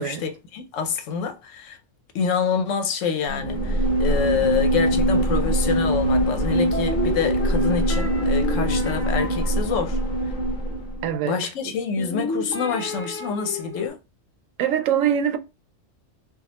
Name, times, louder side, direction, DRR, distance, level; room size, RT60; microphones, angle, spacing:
voice 1, 0.0-1.8 2.1-10.0 11.2-14.0, left 6 dB, 75° left, 1.0 m, -27 dB
sound 1, 3.3-11.1, right 1 dB, 45° left, 0.9 m, -23 dB
sound 2, 6.7-10.9 12.0-13.9, left 2 dB, 20° left, 0.3 m, -33 dB
voice 2, 11.0-11.4 14.6-15.4, right 9 dB, 80° right, 1.0 m, -23 dB
3.5 x 2.3 x 2.9 m
omnidirectional pair, 1.3 m